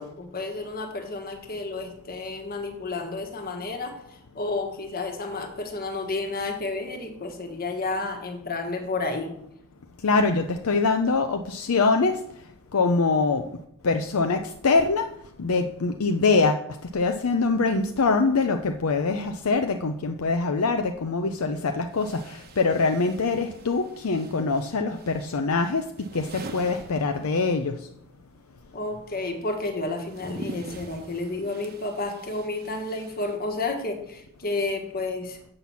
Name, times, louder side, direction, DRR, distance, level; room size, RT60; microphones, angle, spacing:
voice 1, 0.0-9.3 28.7-35.4, left 2 dB, 45° left, 5 dB, 1.5 m, -31 dB
voice 2, 10.0-12.2 12.7-13.4 13.8-15.1 15.4-25.8 26.1-27.7, left 3 dB, 70° left, 5 dB, 0.6 m, -24 dB
sound 1, 21.0-21.1 21.9-27.7 28.0-33.8, right 2 dB, 45° right, 1.1 m, -45 dB
7.8 x 5.9 x 7.0 m, 0.77 s
head